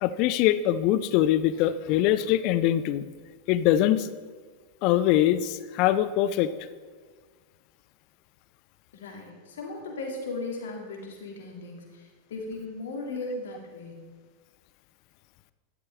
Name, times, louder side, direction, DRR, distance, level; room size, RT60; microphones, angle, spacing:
voice 1, 0.0-3.0 3.5-4.1 4.8-6.5, left 12 dB, 45° left, 14 dB, 0.6 m, -23 dB
voice 2, 8.9-14.1, left 2 dB, 60° left, 0 dB, 2.7 m, -37 dB
13.0 x 11.0 x 3.7 m, 1.5 s
figure-of-eight pair, 90°, 0 cm